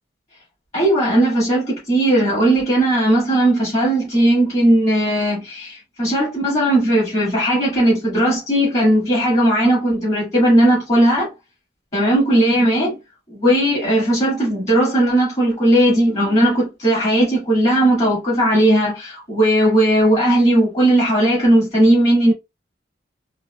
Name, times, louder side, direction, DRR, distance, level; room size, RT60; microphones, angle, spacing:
voice 1, 0.7-11.3 11.9-13.0 13.3-22.3, right 1 dB, 40° left, 1.9 m, -17 dB
4.0 x 2.8 x 2.3 m
head